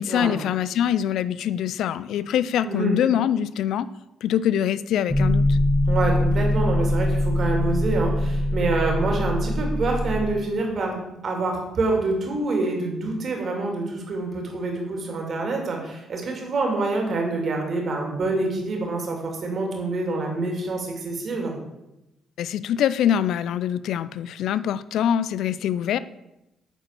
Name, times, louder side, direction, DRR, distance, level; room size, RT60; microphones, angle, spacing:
voice 1, 0.0-3.9 4.2-5.6 22.4-26.0, left 10 dB, 80° left, 16 dB, 0.4 m, -24 dB
voice 2, 2.6-3.0 5.9-21.5, right 3 dB, 50° right, 1 dB, 2.8 m, -26 dB
sound 1, 5.1-10.3, left 1 dB, ahead, 1.1 m, -22 dB
9.1 x 4.2 x 6.7 m, 0.92 s
cardioid pair, 90°, 0 cm